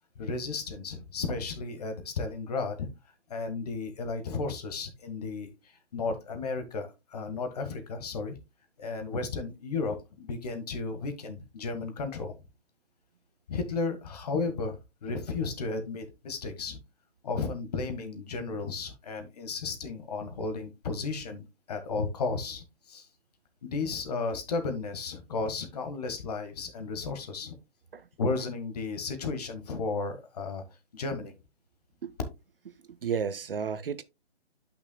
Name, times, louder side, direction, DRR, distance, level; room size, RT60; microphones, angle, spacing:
voice 1, 0.1-2.9 3.3-8.4 8.8-12.4 13.5-16.8 17.2-23.1 23.6-27.5 28.2-30.6 30.9-31.3, left 4 dB, 35° left, 1.5 m, -34 dB
voice 2, 33.0-34.0, right 6 dB, 55° right, 0.7 m, -32 dB
10.5 x 5.9 x 2.2 m
hypercardioid pair, 160°, 33 cm